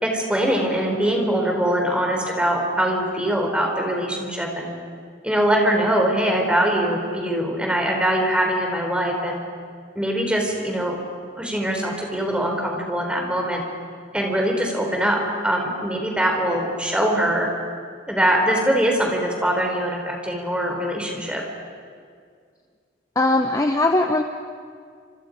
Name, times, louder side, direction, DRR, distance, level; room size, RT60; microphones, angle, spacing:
voice 1, 0.0-4.7 5.2-9.4 10.0-11.0 11.4-13.6 14.1-17.5 18.1-21.4, right 1 dB, 5° right, 1 dB, 3.7 m, -22 dB
voice 2, 23.2-24.2, left 2 dB, 20° left, 5 dB, 0.8 m, -19 dB
28.5 x 26.5 x 5.2 m, 2.1 s
head